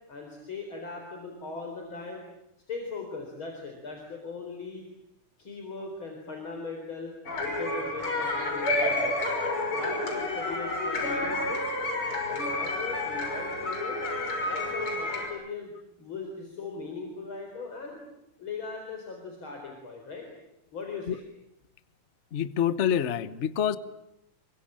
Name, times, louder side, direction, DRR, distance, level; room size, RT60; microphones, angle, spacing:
voice 1, 0.1-2.2 2.7-4.9 5.4-9.4 9.7-11.7 12.3-14.0 14.4-18.0 18.4-20.3 20.7-21.2, left 4 dB, 65° left, 2 dB, 5.1 m, -39 dB
sound 1, 7.3-15.3, left 2 dB, 85° left, 6.9 m, -30 dB
voice 2, 22.3-23.8, left 9 dB, 40° left, 14 dB, 1.1 m, -26 dB
28.0 x 24.0 x 8.9 m, 0.86 s
omnidirectional pair, 2.4 m